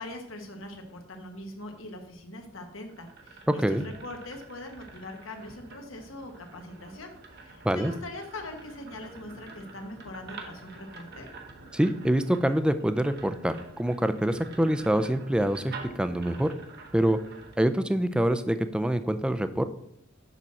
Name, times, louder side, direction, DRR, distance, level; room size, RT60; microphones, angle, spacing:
voice 1, 0.0-7.1 7.4-11.3, left 1 dB, 85° left, 4 dB, 1.3 m, -42 dB
sound 1, 2.7-17.6, right 3 dB, 55° right, 1.1 m, -47 dB
voice 2, 11.7-16.5 16.9-17.2 17.6-19.6, right 1 dB, 5° right, 10 dB, 0.4 m, -25 dB
6.8 x 6.0 x 4.2 m, 0.72 s
head